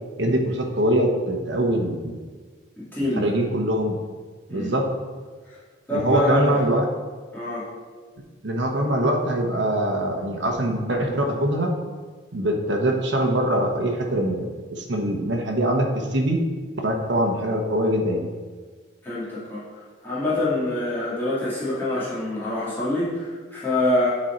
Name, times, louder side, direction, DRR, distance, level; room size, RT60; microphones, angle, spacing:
voice 1, 0.2-2.2 3.2-4.0 4.5-4.8 5.9-6.9 8.4-11.7 12.3-16.4 16.8-18.3, right 1 dB, 65° right, 1 dB, 0.9 m, -23 dB
voice 2, 2.8-3.3 4.5-4.7 5.5-5.6 5.9-6.6 7.3-7.7 19.0-24.1, left 1 dB, 10° left, -10 dB, 2.0 m, -26 dB
9.0 x 4.3 x 4.4 m, 1.4 s
head